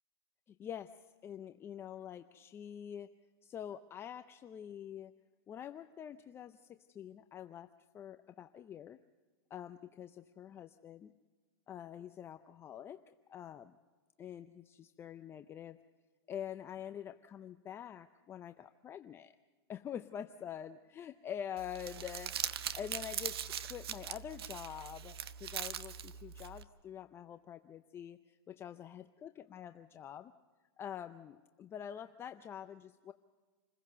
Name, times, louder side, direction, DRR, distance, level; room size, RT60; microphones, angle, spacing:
voice 1, 0.6-0.9 1.2-3.1 3.4-5.1 5.5-7.7 7.9-9.0 9.5-11.1 11.7-13.0 13.3-13.7 14.2-15.8 16.3-19.4 19.7-22.3 22.7-30.3 30.8-33.1, left 9 dB, 20° left, 9 dB, 0.5 m, -46 dB
Crumpling crinkling, 21.6-26.6, right 9 dB, 70° right, 1.1 m, -41 dB
28.0 x 16.0 x 6.7 m, 1.4 s
hypercardioid pair, 140°, 13 cm